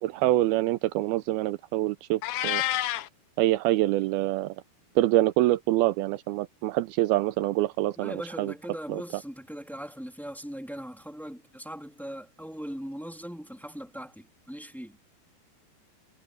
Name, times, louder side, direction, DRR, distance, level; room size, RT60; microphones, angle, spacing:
voice 1, 0.0-2.6 3.4-4.6 5.0-8.5 8.9-9.0, right 16 dB, 85° right, 2.2 m, -25 dB
Meow, 2.2-3.1, left 13 dB, 85° left, 1.8 m, -28 dB
voice 2, 8.0-15.0, equal, ahead, 1.8 m, -40 dB
omnidirectional pair, 4.9 m